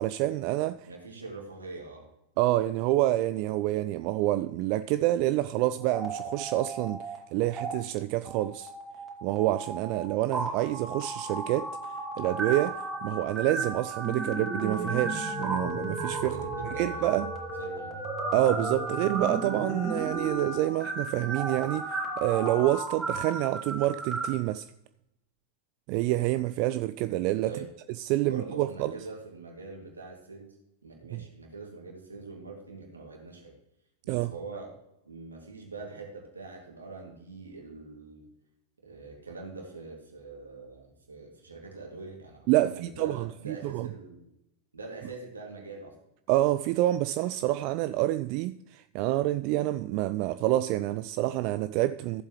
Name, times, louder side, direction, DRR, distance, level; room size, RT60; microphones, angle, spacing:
voice 1, 0.0-0.9 2.4-8.7 9.2-11.7 12.2-16.4 16.8-17.3 18.3-24.7 25.9-27.5 28.0-28.9 31.1-31.2 34.1-34.3 42.5-43.9 46.3-52.2, right 15 dB, 45° right, 0.3 m, -27 dB
voice 2, 0.9-2.1 16.3-17.1 17.6-18.0 27.4-27.7 28.2-30.6 30.8-33.6 34.0-34.7 35.0-38.3 38.8-44.3 44.7-46.0, right 3 dB, 75° right, 2.5 m, -43 dB
sound 1, 5.8-7.2 7.4-7.7 8.2-24.3, right 2 dB, 15° right, 2.3 m, -34 dB
15.0 x 7.3 x 3.2 m
figure-of-eight pair, 90°, 0 cm